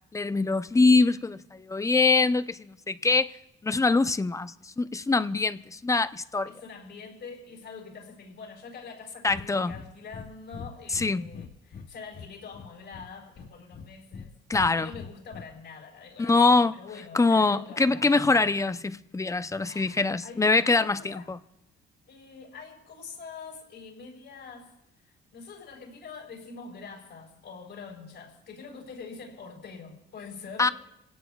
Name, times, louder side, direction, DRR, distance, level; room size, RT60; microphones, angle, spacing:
voice 1, 0.1-3.3 3.6-6.5 9.2-9.7 10.9-11.3 14.5-14.9 16.2-16.8 17.1-21.4 30.6-30.7, left 3 dB, 15° left, 0.6 m, -24 dB
voice 2, 6.5-14.3 14.7-18.1 19.6-21.3 22.1-24.7 25.0-30.7, left 5 dB, 70° left, 4.9 m, -45 dB
Breathing, 9.3-9.5 9.7-9.9 10.1-10.3 10.5-11.9 12.1-13.1 13.4-14.3 14.5-15.4, left 6 dB, 45° left, 1.0 m, -42 dB
27.0 x 17.5 x 2.4 m
cardioid pair, 90°, 20 cm